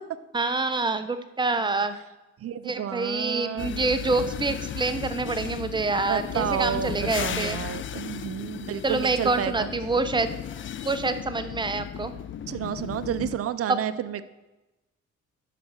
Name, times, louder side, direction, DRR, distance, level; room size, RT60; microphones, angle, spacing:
voice 1, 0.3-2.0 2.6-7.6 8.8-10.3 10.8-12.1, right 3 dB, 15° right, 9 dB, 0.8 m, -26 dB
voice 2, 2.4-4.1 6.0-9.7 11.5-11.7 12.5-14.2, right 9 dB, 50° right, 13 dB, 0.6 m, -31 dB
sound 1, 3.6-13.4, left 10 dB, 40° left, 0.5 m, -35 dB
12.0 x 4.7 x 6.6 m, 1.1 s
cardioid pair, 90°, 30 cm